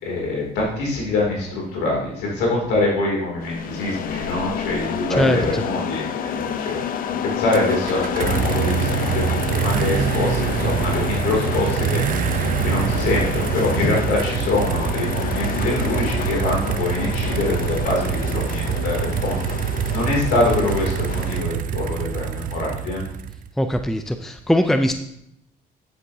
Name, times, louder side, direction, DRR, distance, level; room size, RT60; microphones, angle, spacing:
voice 1, 0.0-6.8 7.1-23.0, left 2 dB, 85° left, -2 dB, 2.8 m, -24 dB
sound 1, 3.4-21.4, left 8 dB, 55° left, 0.6 m, -29 dB
voice 2, 5.2-5.6 23.6-24.9, equal, ahead, 7 dB, 0.5 m, -20 dB
sound 2, 7.5-23.5, right 9 dB, 55° right, 0.5 m, -25 dB
9.9 x 7.9 x 2.8 m, 0.75 s
cardioid pair, 110°, 17 cm